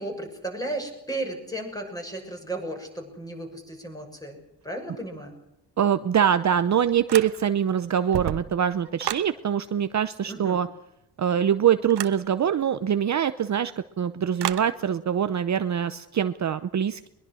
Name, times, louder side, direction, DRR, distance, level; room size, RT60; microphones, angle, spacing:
voice 1, 0.0-4.4 4.6-5.3 10.3-10.6, right 1 dB, 10° left, 3 dB, 6.6 m, -34 dB
voice 2, 5.8-10.7 11.2-13.7 14.0-17.1, right 9 dB, 40° right, 11 dB, 0.8 m, -24 dB
sound 1, 7.1-7.7 8.0-9.3 11.9-12.2 14.4-14.7, right 11 dB, 75° right, 1.3 m, -31 dB
22.0 x 22.0 x 6.4 m, 0.86 s
cardioid pair, 140°, 42 cm